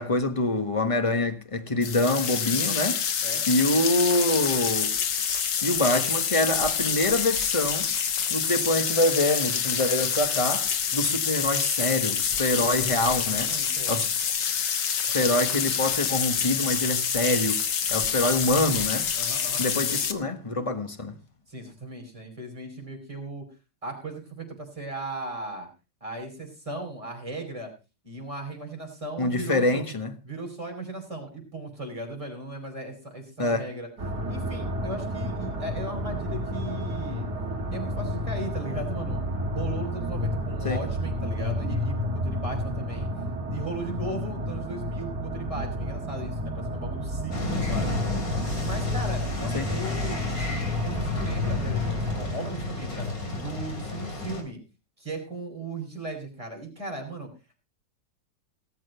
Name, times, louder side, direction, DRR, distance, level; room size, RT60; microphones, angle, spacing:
voice 1, 0.0-3.0 3.5-4.9 5.6-7.9 8.3-13.5 13.9-14.1 15.1-17.6 17.9-19.1 19.6-21.2 29.2-30.1 33.4-33.7 40.6-40.8 49.5-49.7, left 2 dB, 20° left, 1.3 m, -25 dB
sound 1, 1.8-20.1, left 7 dB, 75° left, 2.0 m, -27 dB
voice 2, 13.3-13.9 19.1-19.7 21.5-23.5 23.8-25.7 26.0-27.7 28.0-29.8 30.2-33.9 34.3-37.3 37.7-39.2 39.5-43.1 43.5-48.0 48.6-50.2 50.8-53.1 53.3-54.6 55.0-57.3, right 2 dB, 15° right, 6.1 m, -37 dB
sound 2, 34.0-52.3, left 1 dB, 65° right, 3.2 m, -30 dB
sound 3, 47.3-54.4, left 2 dB, 55° left, 3.5 m, -32 dB
18.5 x 7.7 x 5.6 m
omnidirectional pair, 1.9 m